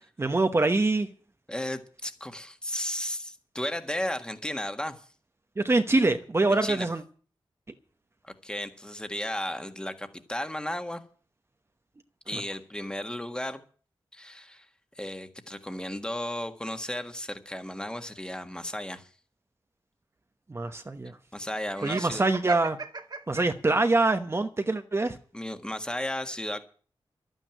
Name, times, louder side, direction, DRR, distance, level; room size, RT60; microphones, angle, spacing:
voice 1, 0.2-1.1 5.6-7.0 12.3-12.4 20.5-21.1 21.8-22.8 23.3-25.2, right 2 dB, 30° right, 1.0 m, -24 dB
voice 2, 1.5-5.0 6.5-6.9 8.2-11.0 12.3-13.6 14.1-14.7 14.9-19.1 21.3-22.2 25.3-26.6, left 1 dB, 10° left, 1.6 m, -34 dB
Laughter, 21.7-24.1, right 4 dB, 50° right, 1.5 m, -38 dB
12.5 x 9.1 x 9.0 m
wide cardioid pair, 130°, 9 cm